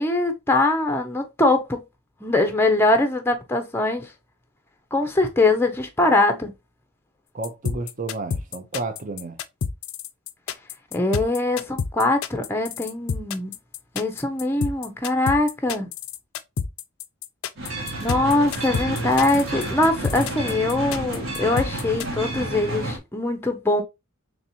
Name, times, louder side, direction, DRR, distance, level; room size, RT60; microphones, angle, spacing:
voice 1, 0.0-1.8 2.2-4.1 4.9-6.5 10.9-13.5 13.9-15.9 18.0-23.8, left 2 dB, 10° left, 0.5 m, -22 dB
voice 2, 7.3-9.4, right 3 dB, 35° right, 0.6 m, -31 dB
sound 1, 7.4-22.1, left 6 dB, 75° left, 0.4 m, -29 dB
sound 2, 17.6-23.0, right 2 dB, 70° right, 1.2 m, -30 dB
4.0 x 3.3 x 2.8 m
head